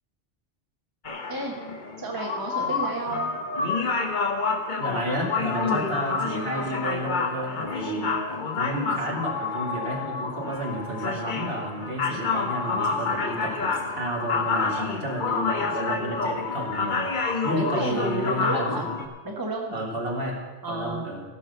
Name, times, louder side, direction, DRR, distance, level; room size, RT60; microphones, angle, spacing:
sound 1, 1.0-19.1, left 4 dB, 45° left, 1.1 m, -28 dB
voice 1, 2.0-3.3 5.6-5.9 17.5-18.9 19.2-19.8 20.6-21.1, right 2 dB, 20° right, 0 dB, 1.4 m, -31 dB
voice 2, 4.8-8.2 8.5-17.1 17.4-18.9 19.7-20.4 20.7-21.2, right 1 dB, 60° right, -1 dB, 2.4 m, -31 dB
15.0 x 6.2 x 6.7 m, 1.3 s
omnidirectional pair, 1.1 m